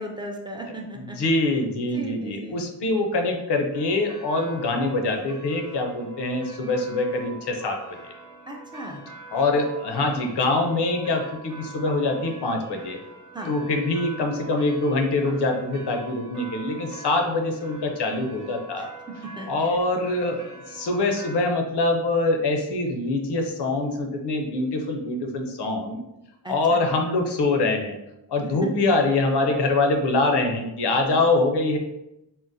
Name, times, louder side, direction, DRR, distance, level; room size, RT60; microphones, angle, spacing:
voice 1, 0.0-1.2 1.9-2.6 8.5-9.0 13.3-13.5 19.1-19.8 20.2-20.3 26.4-26.8 28.4-28.7, right 1 dB, 10° right, 0 dB, 0.3 m, -36 dB
voice 2, 0.9-7.8 9.3-13.0 13.5-18.9 19.5-20.4 20.7-26.0 26.5-28.0 28.3-31.8, left 2 dB, 75° left, 4 dB, 0.6 m, -24 dB
sound 1, 3.7-21.4, right 2 dB, 50° right, 0.7 m, -44 dB
3.7 x 2.0 x 2.6 m, 0.90 s
wide cardioid pair, 115°, 40 cm